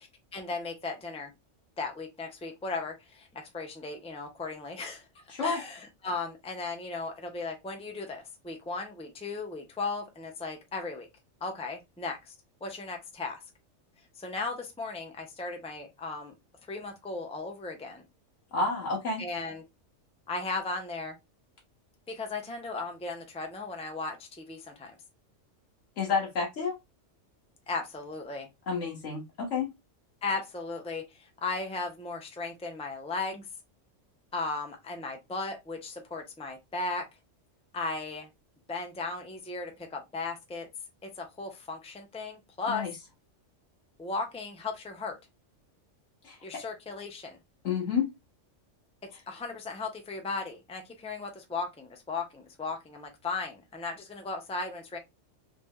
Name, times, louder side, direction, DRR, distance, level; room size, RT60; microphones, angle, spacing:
voice 1, 0.3-1.3 1.8-11.1 11.4-12.3 12.6-13.4 14.2-16.3 16.7-18.0 19.2-19.6 20.3-21.2 22.1-25.0 27.7-28.5 30.2-33.5 34.3-37.1 37.7-38.3 38.7-40.7 41.0-42.9 44.0-45.2 46.4-47.4 49.3-55.0, left 3 dB, 5° left, 4 dB, 0.5 m, -36 dB
voice 2, 5.3-5.6 18.5-19.2 26.0-26.8 28.7-29.7 42.7-42.9 46.2-46.6 47.6-48.1, left 5 dB, 80° left, 0 dB, 1.2 m, -30 dB
3.3 x 2.8 x 3.5 m, 0.21 s
omnidirectional pair, 1.3 m